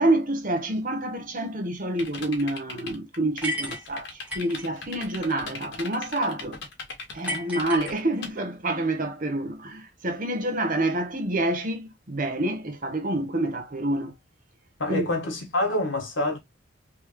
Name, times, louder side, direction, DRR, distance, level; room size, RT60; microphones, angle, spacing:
voice 1, 0.0-6.6 7.1-14.1 14.9-15.0, right 1 dB, 45° right, 1.0 m, -27 dB
sound 1, 2.0-8.3, left 4 dB, 70° left, 1.4 m, -38 dB
sound 2, 3.4-4.7 7.3-8.4, equal, 10° right, 1.3 m, -33 dB
voice 2, 14.8-16.4, left 1 dB, 85° left, 1.5 m, -26 dB
3.4 x 3.2 x 3.0 m
head